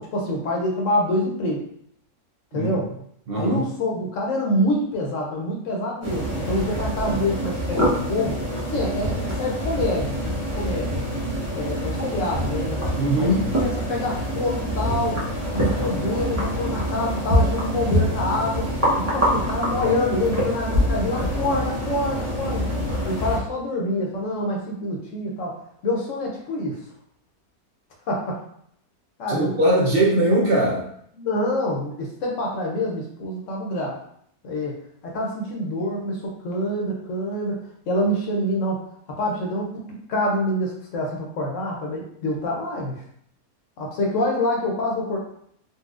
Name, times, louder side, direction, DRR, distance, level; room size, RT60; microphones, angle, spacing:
voice 1, 0.0-1.6 2.5-2.9 3.3-8.4 8.7-10.2 10.6-11.0 11.5-12.8 13.2-15.2 15.5-18.7 19.1-22.7 23.1-25.6 25.8-26.8 28.1-28.4 29.2-29.6 31.2-34.0 34.4-34.7 35.0-37.6 37.9-38.8 39.2-39.7 40.1-43.0 43.8-45.2, left 1 dB, 65° left, -1 dB, 1.0 m, -26 dB
voice 2, 2.5-2.8 3.3-3.6 13.0-13.4 29.3-30.9, right 1 dB, 65° right, -4 dB, 0.5 m, -21 dB
sound 1, 6.0-23.4, equal, 15° right, 0.7 m, -25 dB
4.0 x 2.2 x 2.4 m, 0.68 s
omnidirectional pair, 1.6 m